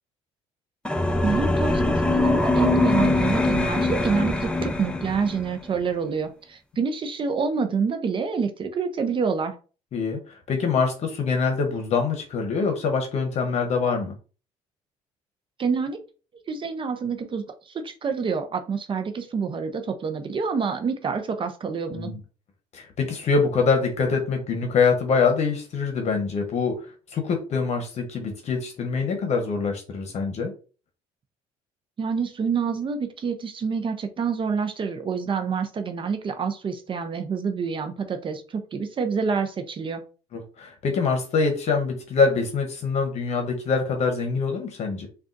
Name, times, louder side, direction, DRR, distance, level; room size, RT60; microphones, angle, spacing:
sound 1, 0.9-5.5, left 2 dB, 5° left, 0.6 m, -22 dB
voice 1, 1.2-9.6 15.6-16.0 16.5-22.1 32.0-40.0, right 5 dB, 40° right, 7 dB, 0.5 m, -27 dB
voice 2, 9.9-14.1 21.9-22.2 22.7-30.5 40.3-45.1, left 5 dB, 55° left, 4 dB, 0.8 m, -24 dB
3.6 x 2.3 x 2.5 m, 0.36 s
supercardioid pair, 70°, 14 cm